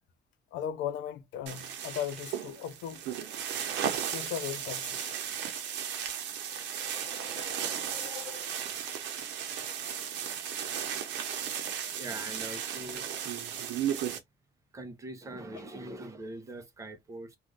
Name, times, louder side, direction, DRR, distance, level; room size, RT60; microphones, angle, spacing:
voice 1, 0.5-3.0 4.1-5.1, left 9 dB, 90° left, 0.6 m, -37 dB
sound 1, 1.5-14.2, right 9 dB, 85° right, 0.8 m, -35 dB
sound 2, 5.8-8.9, left 5 dB, 15° left, 0.9 m, -49 dB
voice 2, 12.0-13.3 14.7-17.4, right 2 dB, 15° right, 0.6 m, -42 dB
2.5 x 2.4 x 3.2 m
cardioid pair, 170°, 18 cm